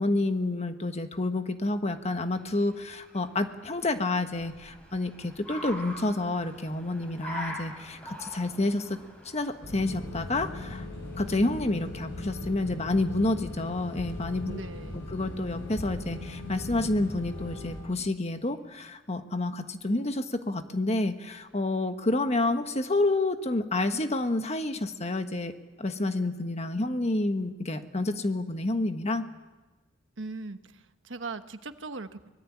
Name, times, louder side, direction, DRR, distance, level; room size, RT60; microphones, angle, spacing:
voice 1, 0.0-9.0 9.2-10.9 11.2-14.6 14.9-25.5 25.8-29.3, left 2 dB, 35° left, 8 dB, 1.4 m, -29 dB
Car, 2.0-12.2, equal, 5° left, 6.1 m, -45 dB
sound 1, 9.6-17.8, left 1 dB, 75° left, 7.0 m, -39 dB
voice 2, 14.5-15.1 30.2-32.3, right 3 dB, 80° right, 9 dB, 1.2 m, -39 dB
24.5 x 20.0 x 8.5 m, 1.2 s
head